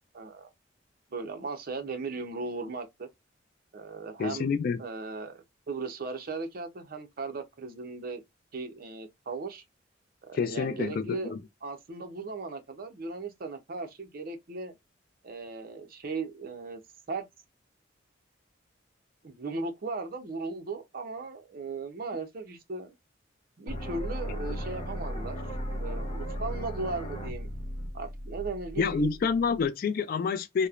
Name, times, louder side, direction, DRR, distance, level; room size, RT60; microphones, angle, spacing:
voice 1, 0.1-0.5 1.1-3.1 3.7-4.5 4.8-5.4 5.7-8.2 8.5-9.6 10.3-11.3 11.6-14.7 15.2-16.8 17.1-17.3 19.2-22.9 23.6-25.4 25.8-27.5 27.9-29.0, right 3 dB, 50° right, 0.6 m, -37 dB
voice 2, 4.2-4.8 10.3-11.4 28.8-30.7, left 5 dB, 50° left, 0.3 m, -28 dB
sound 1, 23.7-29.6, equal, 30° left, 0.7 m, -36 dB
3.0 x 2.0 x 2.3 m
head